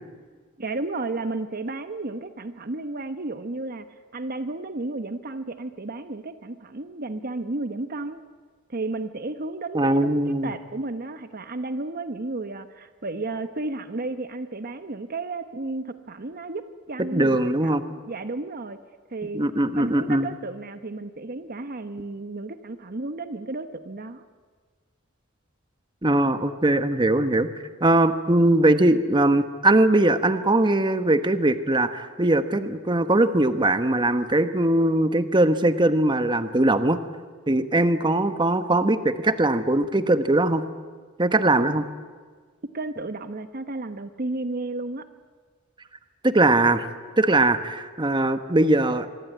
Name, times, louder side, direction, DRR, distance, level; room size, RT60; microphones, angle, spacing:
voice 1, 0.6-3.8 4.1-8.2 8.7-18.8 19.1-19.5 19.7-24.2 41.6-41.7 42.7-45.0, right 2 dB, 45° right, 10 dB, 1.0 m, -33 dB
voice 2, 9.7-10.5 17.1-17.8 19.3-20.3 26.0-27.5 27.8-37.0 37.5-40.6 41.2-41.8 46.2-46.8 47.2-49.1, right 2 dB, 25° right, 10 dB, 1.2 m, -21 dB
25.5 x 24.0 x 9.4 m, 1.6 s
head